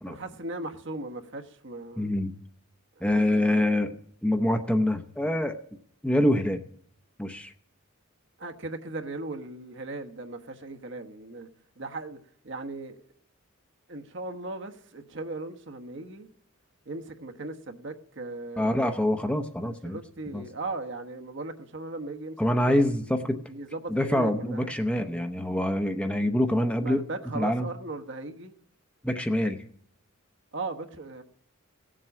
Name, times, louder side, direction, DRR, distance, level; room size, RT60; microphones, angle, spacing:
voice 1, 0.0-2.1 3.0-3.6 8.4-11.5 11.8-12.2 12.4-13.0 13.9-16.3 16.8-18.8 19.6-22.8 23.5-24.7 26.8-28.5 30.5-31.2, right 2 dB, 60° right, 1.2 m, -38 dB
voice 2, 2.0-2.3 3.0-5.6 6.0-6.6 7.2-7.5 18.6-20.0 20.3-20.4 22.4-23.5 23.9-27.0 27.3-27.7 29.0-29.6, left 1 dB, 5° left, 0.8 m, -25 dB
17.0 x 7.6 x 8.3 m
head